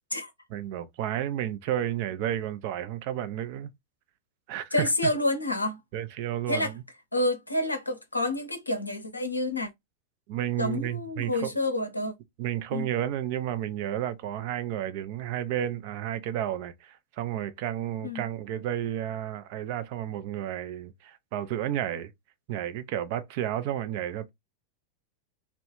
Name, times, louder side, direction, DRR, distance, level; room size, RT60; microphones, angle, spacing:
voice 1, 0.5-3.7 4.5-4.9 5.9-6.8 10.3-11.5 12.4-22.1 22.5-24.3, right 11 dB, 45° right, 0.3 m, -32 dB
voice 2, 4.7-5.8 6.5-6.7 7.1-9.7 10.6-12.1 12.7-12.9 18.0-18.2, left 1 dB, 85° left, 0.5 m, -28 dB
2.2 x 2.0 x 2.9 m
figure-of-eight pair, 90°, 0 cm